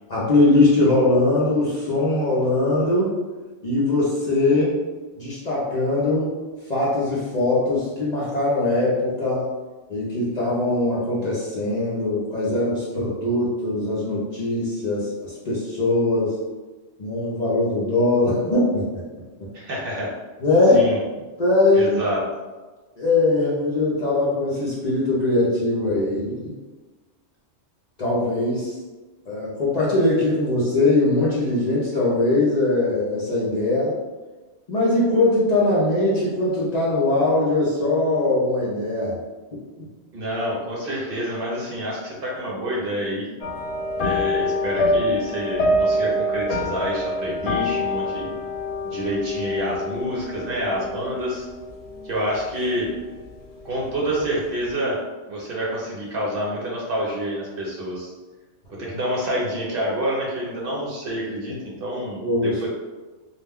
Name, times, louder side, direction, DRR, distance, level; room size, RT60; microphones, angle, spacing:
voice 1, 0.1-3.1 3.6-4.8 5.2-6.3 6.7-9.5 9.9-16.3 17.0-19.0 20.4-20.9 21.4-22.0 23.0-26.5 28.0-28.8 29.3-33.9 34.7-39.2 62.2-62.7, left 2 dB, 45° left, -7 dB, 0.6 m, -21 dB
voice 2, 19.5-20.1 20.7-21.0 21.7-22.2 40.1-43.3 44.0-48.2 48.8-51.5 52.0-52.9 53.6-55.0 55.3-58.1 58.7-62.7, equal, 60° right, -4 dB, 0.8 m, -28 dB
sound 1, 43.4-53.0 53.2-53.6 54.0-54.1, left 1 dB, 80° left, 0.9 m, -26 dB
2.3 x 2.1 x 3.4 m, 1.2 s
omnidirectional pair, 1.2 m